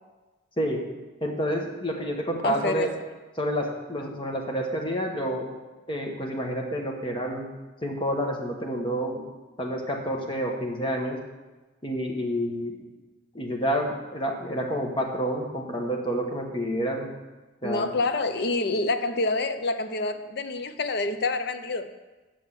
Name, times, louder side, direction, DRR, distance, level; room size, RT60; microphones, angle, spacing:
voice 1, 1.2-2.9 3.4-5.5 5.9-7.5 7.8-9.2 9.6-11.2 11.8-12.8 13.3-17.1 17.6-17.9, equal, 25° left, 0 dB, 1.2 m, -29 dB
voice 2, 2.4-2.9 17.6-21.9, left 3 dB, 55° left, 9 dB, 0.6 m, -27 dB
6.4 x 6.2 x 7.5 m, 1.2 s
head